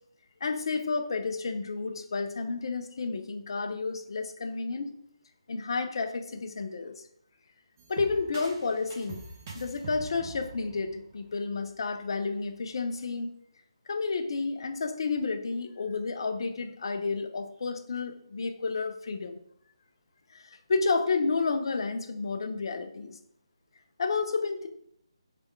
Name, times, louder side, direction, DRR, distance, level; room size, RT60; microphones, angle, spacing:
voice 1, 0.4-4.9 5.5-7.0 7.9-9.2 9.5-13.3 13.9-19.4 20.3-23.2 24.0-24.7, left 4 dB, 55° left, 7 dB, 0.6 m, -31 dB
sound 1, 7.8-11.7, right 3 dB, 35° right, 0.8 m, -44 dB
3.5 x 3.4 x 4.4 m, 0.72 s
figure-of-eight pair, 155°, 3 cm